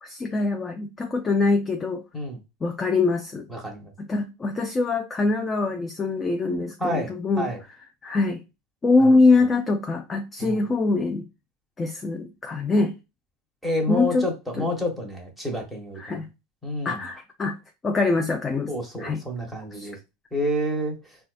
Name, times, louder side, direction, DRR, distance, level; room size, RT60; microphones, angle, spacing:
voice 1, 0.0-2.0 2.6-3.5 4.0-7.5 8.0-8.4 8.8-11.2 11.8-12.9 13.9-14.2 14.6-14.7 16.0-16.3 16.8-17.6 17.8-18.7 19.0-19.2 19.7-19.9, left 3 dB, 20° left, 0.4 m, -23 dB
voice 2, 3.5-3.9 6.8-7.6 9.0-9.2 10.4-10.6 13.6-16.2 16.6-17.0 18.7-20.0 20.3-21.0, equal, ahead, 1.2 m, -29 dB
3.9 x 2.3 x 2.5 m
supercardioid pair, 115°, 0 cm